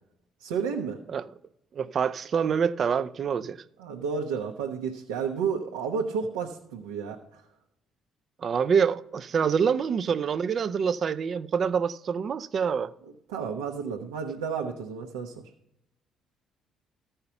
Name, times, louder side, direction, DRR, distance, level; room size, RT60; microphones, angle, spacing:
voice 1, 0.4-1.0 3.8-7.4 13.3-15.5, right 6 dB, 90° right, 0.9 m, -31 dB
voice 2, 1.7-3.6 8.4-12.9, right 6 dB, 50° right, 0.5 m, -26 dB
14.0 x 5.6 x 5.7 m
hypercardioid pair, 60°, 0 cm